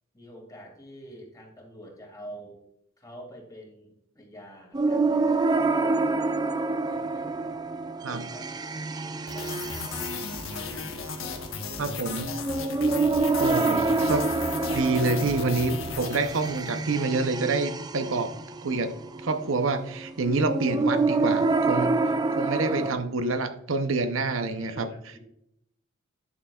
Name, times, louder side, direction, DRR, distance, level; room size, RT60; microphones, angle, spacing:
voice 1, 0.1-2.6 3.0-7.4 7.9-8.5 9.3-10.2 20.6-21.5 22.6-23.0 24.6-25.2, equal, 20° left, 0 dB, 2.3 m, -47 dB
sound 1, 4.7-22.9, right 3 dB, 20° right, 0.4 m, -27 dB
sound 2, 9.3-16.8, left 5 dB, 75° left, 1.1 m, -36 dB
voice 2, 11.8-12.3 13.4-14.3 14.7-18.3 18.6-19.0 19.2-21.9 22.4-24.9, right 3 dB, 70° right, 8 dB, 0.7 m, -27 dB
11.0 x 6.5 x 2.3 m, 0.76 s
head